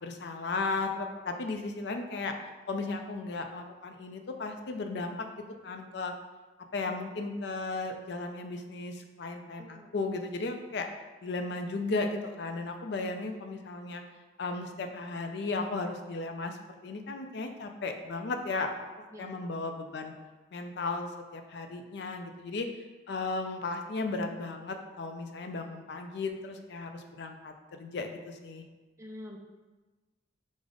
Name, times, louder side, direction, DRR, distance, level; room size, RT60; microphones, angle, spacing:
voice 1, 0.0-2.3 2.7-5.3 5.6-6.1 6.7-10.9 11.2-14.0 14.4-16.6 16.8-18.7 19.2-20.1 20.5-22.7 23.1-28.6, left 3 dB, 60° left, 5 dB, 0.4 m, -35 dB
voice 2, 9.6-9.9 19.1-19.4 29.0-29.4, left 1 dB, 15° right, 2 dB, 0.3 m, -45 dB
4.9 x 2.0 x 3.7 m, 1.2 s
head